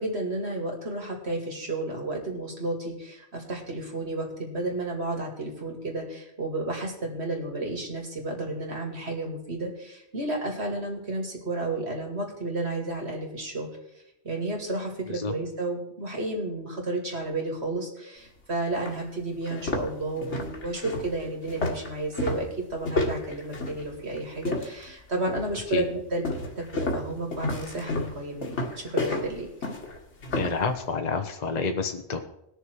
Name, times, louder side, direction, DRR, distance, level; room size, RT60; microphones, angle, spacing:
voice 1, 0.0-13.7 14.2-26.2 26.6-28.5 28.8-29.5, right 2 dB, 60° right, 1 dB, 2.7 m, -32 dB
sound 1, 18.3-18.4 18.9-19.0 19.4-24.9 25.3-25.7 26.2-30.6, left 2 dB, 70° left, 2.0 m, -31 dB
voice 2, 30.4-32.2, left 4 dB, 40° left, 5 dB, 0.9 m, -29 dB
19.5 x 6.7 x 4.6 m, 0.82 s
omnidirectional pair, 1.2 m